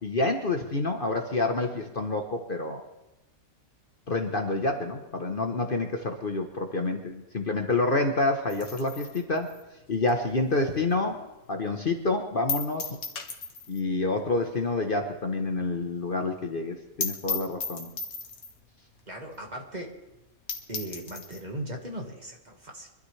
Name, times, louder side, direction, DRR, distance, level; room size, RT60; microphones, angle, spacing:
voice 1, 0.0-2.8 4.1-9.5 9.9-11.2 11.5-13.0 13.7-17.9, left 2 dB, 40° left, 4 dB, 1.1 m, -28 dB
sound 1, 8.5-11.1 11.5-11.6 11.9-12.0 12.5-13.9 14.2-14.3 14.6-14.7 15.1-15.2 15.4-15.5 15.8-15.9 16.2-16.3 16.6-16.7 17.0-18.6 19.3-19.4 19.8-19.9 20.2-20.3 20.5-21.5, left 5 dB, 80° left, 1.8 m, -36 dB
voice 2, 19.1-20.0 20.7-22.9, right 1 dB, 30° right, 1 dB, 1.7 m, -38 dB
24.0 x 12.5 x 3.3 m, 0.99 s
omnidirectional pair, 1.5 m